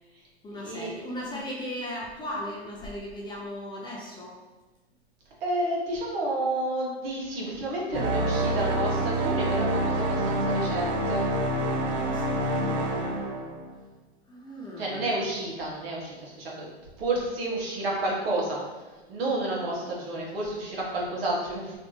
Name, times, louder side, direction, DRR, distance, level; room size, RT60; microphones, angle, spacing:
voice 1, 0.4-4.4 11.8-13.3 14.3-15.1, left 1 dB, 15° left, -3 dB, 0.4 m, -37 dB
voice 2, 5.4-11.3 14.8-16.7 17.0-18.6 19.1-21.8, right 2 dB, 65° right, -4 dB, 1.3 m, -30 dB
sound 1, 7.9-13.7, right 1 dB, 35° right, 0.7 m, -27 dB
3.2 x 2.5 x 3.1 m, 1.2 s
hypercardioid pair, 110°, 32 cm